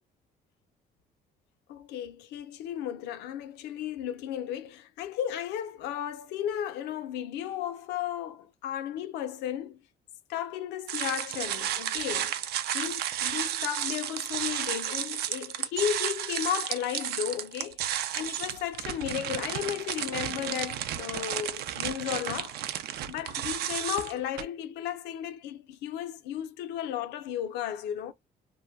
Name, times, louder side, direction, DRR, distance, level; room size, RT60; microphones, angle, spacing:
voice 1, 1.7-9.8 10.3-12.4 12.7-22.6 23.1-28.1, left 10 dB, 85° left, 0.5 m, -34 dB
sound 1, 10.9-24.4, right 11 dB, 70° right, 0.4 m, -33 dB
2.9 x 2.2 x 2.3 m
cardioid pair, 110°, 17 cm